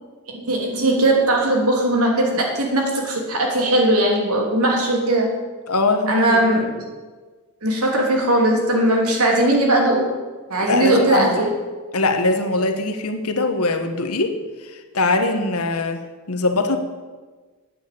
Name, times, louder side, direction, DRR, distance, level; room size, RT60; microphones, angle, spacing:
voice 1, 0.3-5.3 6.1-6.7 7.6-10.1 10.5-11.5, right 1 dB, 80° right, 0 dB, 3.1 m, -19 dB
voice 2, 5.7-6.5 10.6-11.4 11.9-14.3 14.6-16.8, left 2 dB, 80° left, 6 dB, 1.4 m, -22 dB
9.2 x 9.2 x 8.5 m, 1.4 s
head